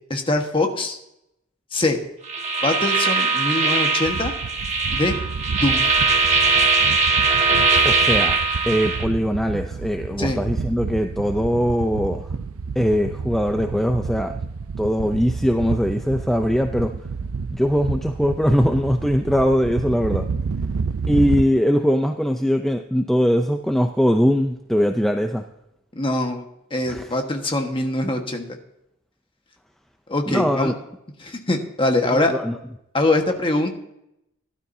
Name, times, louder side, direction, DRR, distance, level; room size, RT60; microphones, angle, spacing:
voice 1, 0.1-1.0 1.7-2.0 2.6-4.3 4.9-5.2 5.6-5.8 10.2-10.4 25.9-26.4 26.7-28.5 30.1-30.7 31.2-32.3 32.9-33.7, left 2 dB, 25° left, 4 dB, 1.4 m, -23 dB
sound 1, 2.3-9.0, right 4 dB, 35° right, 1.5 m, -20 dB
sound 2, 4.0-21.4, right 4 dB, 75° right, 0.5 m, -30 dB
voice 2, 7.8-8.4 8.7-12.3 12.8-14.4 14.8-16.9 17.5-20.3 21.1-25.4 26.9-27.1 30.3-30.7 32.1-32.5, equal, ahead, 5 dB, 0.5 m, -21 dB
16.5 x 12.0 x 2.7 m, 0.82 s
head